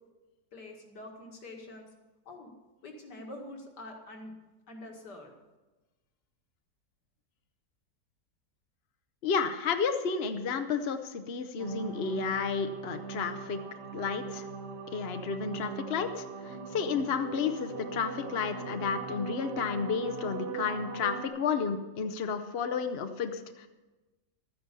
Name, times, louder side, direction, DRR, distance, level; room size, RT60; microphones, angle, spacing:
voice 1, 0.5-1.9 2.3-2.5 2.8-4.3 4.7-5.3, left 1 dB, 70° left, 1 dB, 2.6 m, -45 dB
voice 2, 9.2-13.6 13.9-14.5 14.9-23.7, left 5 dB, 50° left, 7 dB, 0.8 m, -32 dB
sound 1, 11.6-21.3, right 4 dB, 65° right, 1.9 m, -40 dB
13.0 x 10.0 x 6.8 m, 1.2 s
omnidirectional pair, 1.9 m